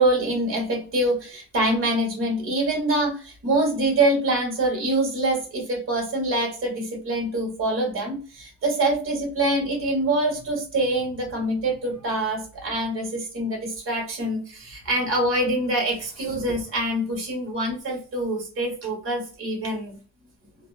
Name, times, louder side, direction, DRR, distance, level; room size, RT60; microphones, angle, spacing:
voice 1, 0.0-20.0, right 1 dB, 45° right, 0 dB, 1.3 m, -25 dB
2.7 x 2.0 x 2.4 m, 0.38 s
cardioid pair, 90°, 30 cm